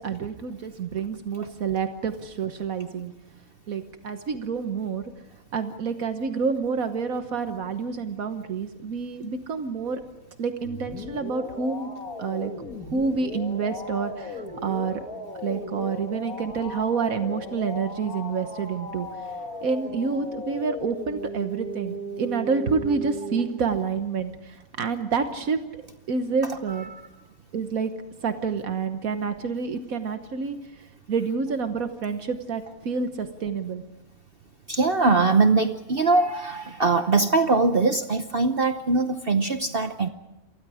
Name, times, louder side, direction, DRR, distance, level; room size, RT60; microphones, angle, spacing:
voice 1, 0.0-3.1 3.7-5.1 5.5-10.0 10.4-11.9 12.2-12.5 12.9-15.0 15.4-19.1 19.6-25.6 26.1-26.9 27.5-27.9 28.2-33.8, right 5 dB, 75° right, 8 dB, 1.6 m, -28 dB
sound 1, 10.6-23.5, left 1 dB, 85° left, 2.9 m, -37 dB
voice 2, 26.7-27.1 34.7-40.1, right 3 dB, 45° right, 8 dB, 1.0 m, -22 dB
29.0 x 23.5 x 4.9 m, 1.0 s
omnidirectional pair, 1.5 m